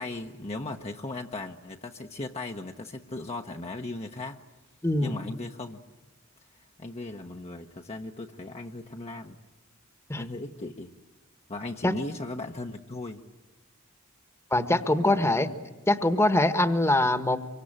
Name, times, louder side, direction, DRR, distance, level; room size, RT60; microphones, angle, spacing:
voice 1, 0.0-4.4 5.0-5.8 6.8-9.4 10.2-10.9 11.5-13.2 15.0-15.3, left 2 dB, 30° left, 2 dB, 1.0 m, -37 dB
voice 2, 4.8-5.2 10.1-10.2 11.8-11.9 14.5-15.5 15.9-17.4, left 1 dB, 15° left, 10 dB, 1.3 m, -23 dB
25.0 x 24.5 x 8.8 m, 1.2 s
head